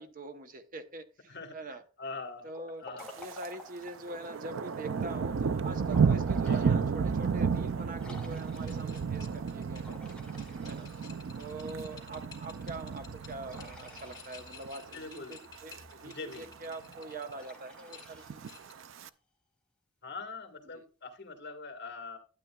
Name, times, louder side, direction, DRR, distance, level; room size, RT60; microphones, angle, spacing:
voice 1, 0.0-1.8 2.4-2.9 3.2-10.0 10.6-10.9 11.4-18.5 20.7-20.8, right 2 dB, 45° right, 9 dB, 0.8 m, -44 dB
voice 2, 1.3-2.5 2.8-3.1 6.4-7.0 14.9-15.4 16.0-16.5 20.0-22.2, left 3 dB, 60° left, 4 dB, 1.7 m, -43 dB
Liquid, 2.5-4.1 5.6-6.6 7.1-7.2 8.0-8.9 9.8-11.4 13.4-14.8 17.3-19.0, left 2 dB, 5° left, 1.7 m, -51 dB
Thunder, 3.0-3.5 3.8-14.2 14.6-14.9 15.4-15.8 16.1-16.2 16.3-16.4 16.8-17.4 18.2-19.1, right 6 dB, 75° right, 0.4 m, -32 dB
sound 1, 8.3-17.5 17.9-18.9, left 6 dB, 20° left, 2.6 m, -53 dB
12.0 x 9.1 x 2.3 m, 0.36 s
head